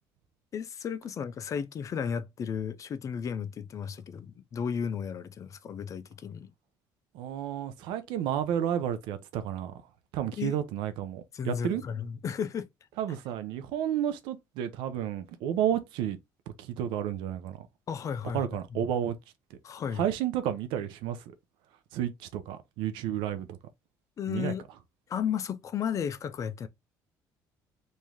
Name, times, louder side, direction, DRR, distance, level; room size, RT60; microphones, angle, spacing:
voice 1, 0.5-6.5 10.4-10.6 11.3-12.7 17.9-18.5 18.7-18.8 19.6-20.0 24.2-24.6 25.1-26.7, left 7 dB, 40° left, 0.5 m, -34 dB
voice 2, 7.1-9.7 10.1-11.8 13.0-16.2 16.6-17.7 18.3-19.2 20.0-21.2 21.9-23.6 24.3-24.5, right 10 dB, 85° right, 0.6 m, -31 dB
3.1 x 2.7 x 3.5 m
cardioid pair, 100°, 8 cm